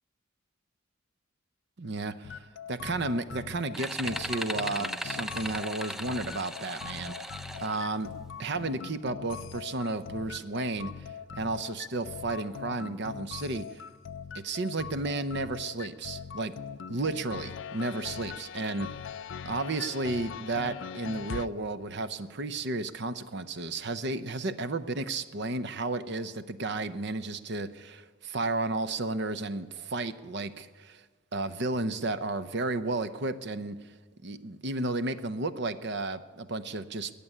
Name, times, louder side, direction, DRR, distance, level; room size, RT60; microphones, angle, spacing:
voice 1, 1.8-2.4 2.7-8.1 8.4-13.8 14.3-16.6 16.9-18.9 19.5-31.0 31.3-33.8 34.2-37.1, right 2 dB, 60° right, 12 dB, 0.7 m, -33 dB
One thousand suspects, 2.2-21.5, left 7 dB, 70° left, 0.4 m, -42 dB
sound 1, 3.7-7.8, equal, ahead, 0.5 m, -37 dB
20.0 x 6.9 x 9.9 m, 1.5 s
head